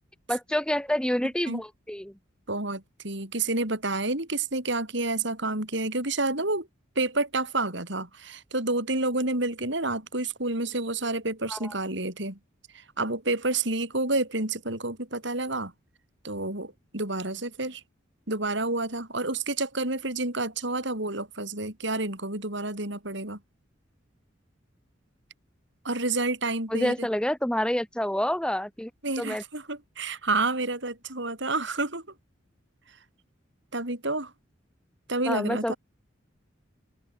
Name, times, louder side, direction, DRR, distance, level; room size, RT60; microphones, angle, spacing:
voice 1, 0.3-2.1 11.5-11.7 26.7-28.9 29.2-29.4 35.2-35.7, equal, 5° left, 1.1 m, -28 dB
voice 2, 2.5-6.7 6.9-12.4 12.7-15.7 16.2-17.8 18.3-23.4 25.8-27.1 29.0-32.0 33.7-34.3 35.1-35.8, right 2 dB, 65° right, 6.5 m, -29 dB
open air
head